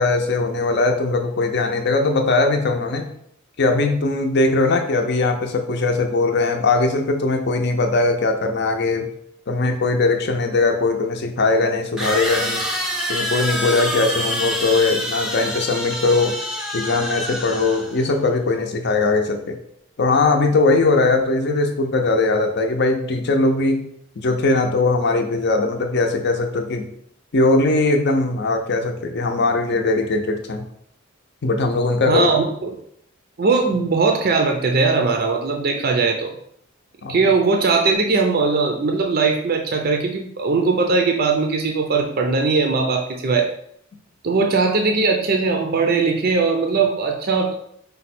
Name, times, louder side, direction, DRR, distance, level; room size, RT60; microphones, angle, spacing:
voice 1, 0.0-3.1 3.6-9.1 9.5-12.6 13.1-16.3 16.7-19.6 20.0-23.9 24.2-26.9 27.3-30.6 31.4-32.3 37.0-37.2, left 3 dB, 55° left, 4 dB, 0.6 m, -20 dB
sound 1, 12.0-18.1, equal, ahead, 0.6 m, -26 dB
voice 2, 32.1-32.8 33.4-36.3 37.1-43.5 44.2-47.5, right 4 dB, 45° right, 2 dB, 0.5 m, -19 dB
5.2 x 2.2 x 4.2 m, 0.69 s
head